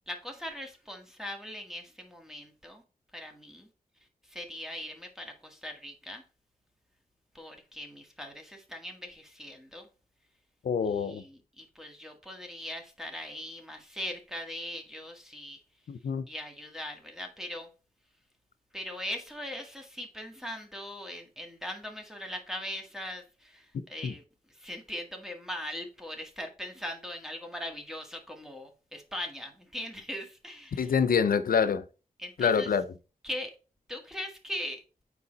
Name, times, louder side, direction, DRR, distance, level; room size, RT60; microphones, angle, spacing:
voice 1, 0.1-2.8 3.1-3.7 4.3-6.2 7.3-9.9 10.8-15.6 16.3-17.7 18.7-24.2 24.6-30.9 32.2-32.7 33.2-33.5 33.9-34.8, left 1 dB, 5° right, 1.8 m, -40 dB
voice 2, 10.6-11.2 15.9-16.2 24.0-24.1 30.8-31.8 32.4-32.8, left 6 dB, 85° left, 0.6 m, -26 dB
6.8 x 4.7 x 4.0 m
cardioid pair, 55°, 15 cm